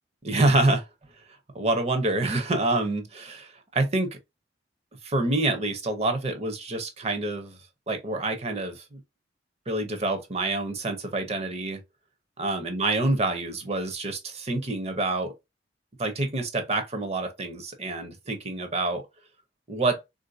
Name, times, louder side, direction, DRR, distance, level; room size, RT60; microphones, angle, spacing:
voice 1, 0.2-0.9 1.5-4.1 5.0-7.6 7.9-9.0 9.7-11.8 12.4-15.3 16.0-19.0 19.7-20.0, right 2 dB, 35° right, 0.7 m, -27 dB
3.5 x 2.6 x 2.6 m
head